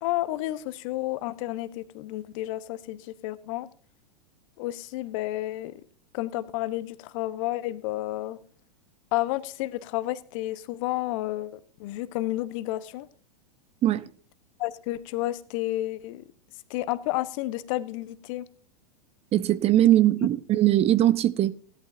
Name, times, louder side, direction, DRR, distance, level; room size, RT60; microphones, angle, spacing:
voice 1, 0.0-3.7 4.6-5.8 6.1-8.4 9.1-13.1 14.6-16.2 16.7-18.5, left 16 dB, 50° left, 1.2 m, -31 dB
voice 2, 19.3-21.7, right 13 dB, 30° right, 0.7 m, -21 dB
17.0 x 12.5 x 2.7 m
hypercardioid pair, 105°, 21 cm